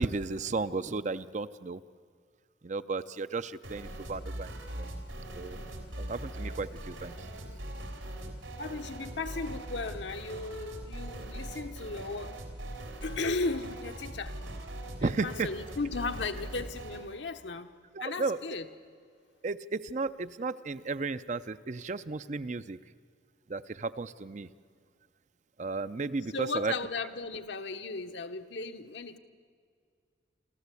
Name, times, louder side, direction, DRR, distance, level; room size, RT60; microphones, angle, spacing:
voice 1, 0.0-1.8 2.6-4.9 5.3-5.6 6.0-7.2 15.0-15.5 17.9-18.4 19.4-22.8 23.5-24.5 25.6-26.7, right 3 dB, 40° right, 13 dB, 0.5 m, -34 dB
sound 1, 3.6-17.1, right 1 dB, 90° right, 3.7 m, -41 dB
voice 2, 8.6-12.4 13.0-14.4 15.0-17.7 18.0-18.7 26.3-29.2, left 3 dB, 65° left, 7 dB, 1.1 m, -36 dB
28.5 x 14.0 x 8.3 m, 2.1 s
head